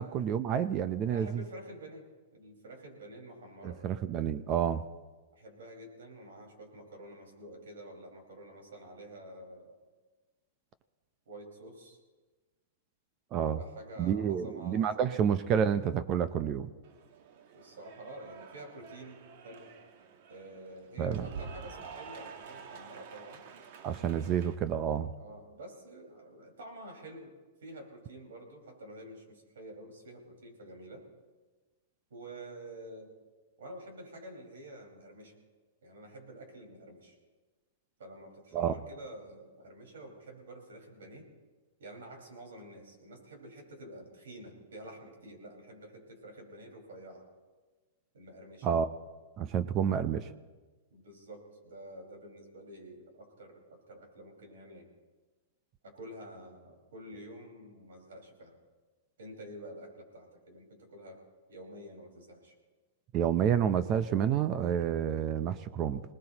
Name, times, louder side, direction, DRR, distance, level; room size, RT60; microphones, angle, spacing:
voice 1, 0.0-1.4 3.6-4.8 13.3-13.6 14.0-16.7 21.0-21.2 23.8-25.1 38.5-38.7 48.6-48.9 49.4-50.3 63.1-66.0, right 8 dB, 30° right, 13 dB, 0.6 m, -29 dB
voice 2, 1.1-2.0 2.3-3.8 5.4-9.8 11.2-12.0 13.5-15.3 17.5-19.7 20.3-23.4 25.2-27.3 27.6-31.0 32.1-33.1 33.6-35.3 35.8-37.2 38.0-41.3 41.8-47.3 48.1-48.7 50.9-54.9 55.8-58.5 59.2-61.2 61.5-62.5, right 1 dB, 90° right, 1 dB, 4.9 m, -48 dB
Cheering / Applause, 16.8-24.5, right 6 dB, 55° right, 1.2 m, -48 dB
25.5 x 19.5 x 2.9 m, 1.3 s
hypercardioid pair, 145°, 0 cm